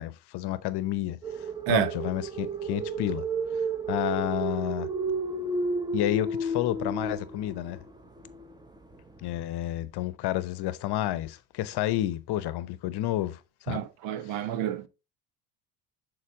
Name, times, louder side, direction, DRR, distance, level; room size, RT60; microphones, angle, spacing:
voice 1, 0.0-3.2 3.9-4.9 5.9-7.8 9.2-13.9 14.2-14.5, left 14 dB, 50° left, 0.8 m, -30 dB
sound 1, 1.2-9.4, right 3 dB, 10° right, 0.8 m, -32 dB
voice 2, 13.7-14.9, right 11 dB, 65° right, 0.9 m, -29 dB
6.8 x 4.1 x 3.8 m
hypercardioid pair, 70°, 50 cm